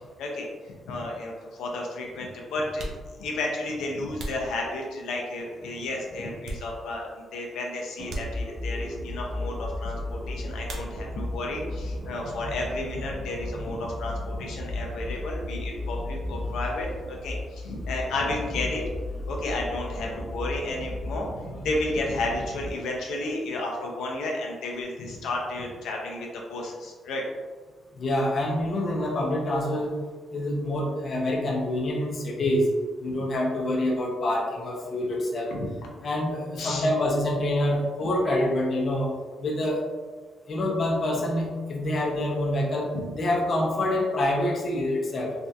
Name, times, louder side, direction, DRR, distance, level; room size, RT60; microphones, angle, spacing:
voice 1, 0.9-2.8 3.2-18.8 19.3-21.3 21.6-27.2 33.1-33.2 35.5-35.7 36.6-36.8 42.9-43.1, left 2 dB, 85° left, -1 dB, 0.5 m, -32 dB
sound 1, 2.7-5.3 5.8-7.2 7.4-7.6 8.0-8.9 10.6-11.4 11.7-12.4 12.6-14.8, right 1 dB, 55° right, 0.5 m, -41 dB
sound 2, 8.0-22.7, left 1 dB, 75° right, 0.9 m, -34 dB
voice 2, 28.0-30.0 30.3-32.7 33.0-35.5 36.0-39.1 39.4-39.8 40.5-45.3, left 1 dB, 40° left, -2 dB, 0.6 m, -26 dB
3.3 x 2.7 x 2.3 m, 1.4 s
cardioid pair, 155°, 0 cm